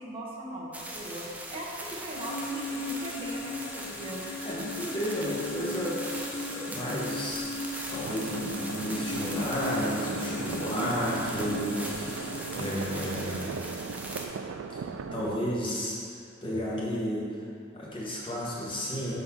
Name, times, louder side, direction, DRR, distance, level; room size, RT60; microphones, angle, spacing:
voice 1, 0.0-4.2, right 1 dB, 30° right, -5 dB, 0.8 m, -39 dB
sound 1, 0.7-14.3, right 1 dB, 10° right, 0.5 m, -40 dB
sound 2, 2.1-12.7, left 3 dB, 85° left, 0.6 m, -37 dB
voice 2, 4.4-6.2 6.5-7.5 7.9-13.5 14.7-14.8 15.1-16.0 16.4-17.3 17.7-19.2, equal, 25° left, -6 dB, 1.2 m, -32 dB
sound 3, 8.0-15.4, right 5 dB, 90° right, 0.3 m, -38 dB
4.5 x 3.9 x 5.7 m, 2.4 s
head